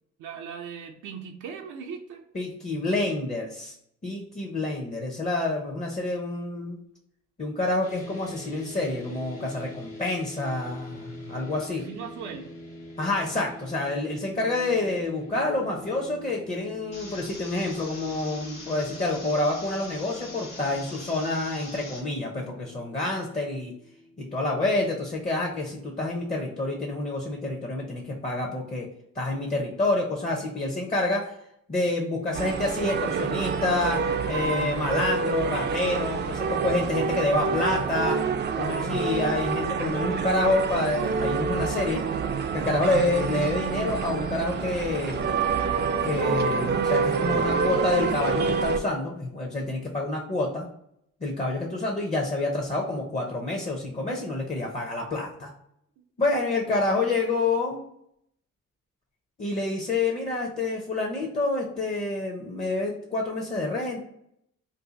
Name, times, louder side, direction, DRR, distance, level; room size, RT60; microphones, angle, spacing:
voice 1, 0.2-2.2 11.6-12.6 56.0-56.1, right 6 dB, 80° right, 2 dB, 0.6 m, -39 dB
voice 2, 2.3-3.7 4.0-6.8 7.4-11.8 13.0-23.7 24.2-28.9 29.1-31.4 31.7-38.2 38.6-42.0 42.5-45.3 46.0-50.7 51.2-55.5 56.2-57.8 59.4-64.0, left 2 dB, 25° left, 0 dB, 0.6 m, -28 dB
sound 1, 7.8-24.2, left 1 dB, 90° left, 1.2 m, -45 dB
sound 2, 16.9-22.0, left 2 dB, 60° left, 1.1 m, -43 dB
sound 3, 32.3-48.8, right 5 dB, 35° right, 0.4 m, -27 dB
2.6 x 2.4 x 3.8 m, 0.75 s
cardioid pair, 90°, 30 cm